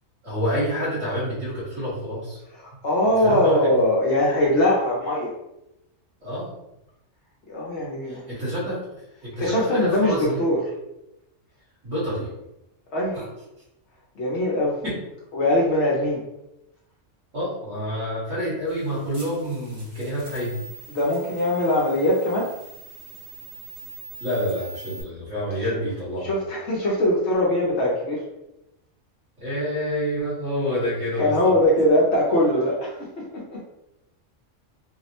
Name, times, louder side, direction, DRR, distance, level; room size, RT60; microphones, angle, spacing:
voice 1, 0.2-2.4 3.2-3.7 6.2-6.5 8.1-10.4 11.8-12.3 13.1-13.3 14.8-15.0 17.3-20.6 24.2-26.3 29.4-31.5, equal, 80° right, -13 dB, 2.1 m, -28 dB
voice 2, 2.5-5.3 7.5-8.2 9.4-10.6 12.9-13.2 14.2-14.8 15.3-16.2 20.9-22.5 25.6-25.8 26.2-28.2 31.2-33.6, left 1 dB, 65° left, -4 dB, 1.0 m, -22 dB
sound 1, 18.7-25.0, right 2 dB, 25° right, 0.7 m, -43 dB
4.0 x 2.0 x 2.9 m, 0.88 s
omnidirectional pair, 1.3 m